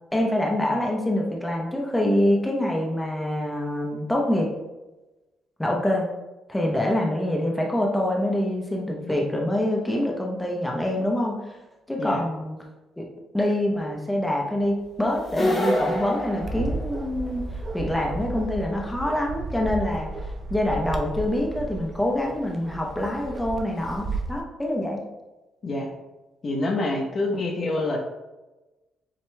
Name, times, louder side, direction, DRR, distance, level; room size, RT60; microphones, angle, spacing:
voice 1, 0.1-4.5 5.6-6.1 6.5-11.4 11.9-12.6 13.0-13.1 13.3-17.4 17.7-20.1 20.5-25.0, left 1 dB, 10° left, -1 dB, 0.8 m, -25 dB
sound 1, 15.2-17.3, left 1 dB, 30° left, 1.2 m, -26 dB
Bark, 16.4-24.4, right 2 dB, 40° right, 0.5 m, -33 dB
voice 2, 26.4-28.0, left 2 dB, 45° left, 1 dB, 0.9 m, -26 dB
7.4 x 2.9 x 2.3 m, 1.1 s
cardioid pair, 90°, 0 cm